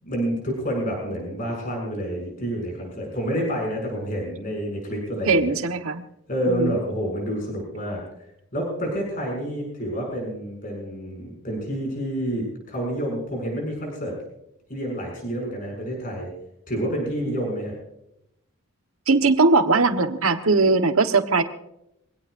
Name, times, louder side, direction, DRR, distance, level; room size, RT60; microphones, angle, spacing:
voice 1, 0.0-5.5 6.3-8.0 8.5-14.2 14.7-16.3 16.7-17.8, equal, 40° left, -1 dB, 6.9 m, -28 dB
voice 2, 5.3-6.0 6.5-6.7 19.1-21.4, right 3 dB, 75° right, 7 dB, 1.4 m, -20 dB
24.0 x 17.5 x 2.7 m, 0.81 s
head